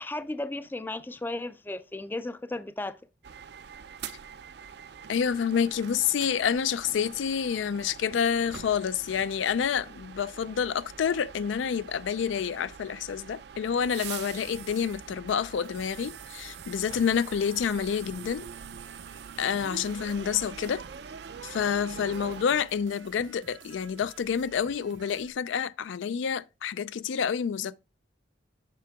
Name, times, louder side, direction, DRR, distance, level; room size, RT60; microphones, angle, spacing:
voice 1, 0.0-3.0, left 2 dB, 10° left, 0.3 m, -35 dB
sound 1, 3.2-22.5, right 7 dB, 60° right, 0.4 m, -44 dB
voice 2, 5.1-18.5 19.4-20.8 21.4-27.8, left 7 dB, 80° left, 0.4 m, -28 dB
sound 2, 14.4-25.3, right 5 dB, 90° right, 1.0 m, -53 dB
7.5 x 5.9 x 3.5 m
head